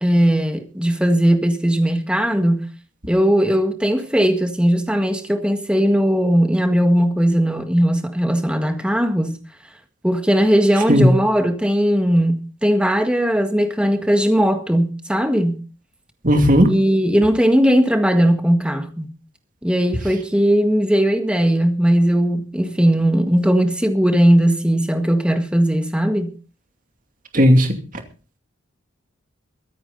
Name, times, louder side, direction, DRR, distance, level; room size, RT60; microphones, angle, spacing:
voice 1, 0.0-2.7 3.1-9.3 10.0-15.6 16.6-19.0 19.6-26.3, equal, 5° right, 1.7 m, -18 dB
voice 2, 16.2-16.7 27.3-27.7, equal, 40° right, 2.5 m, -13 dB
23.5 x 9.6 x 4.0 m
head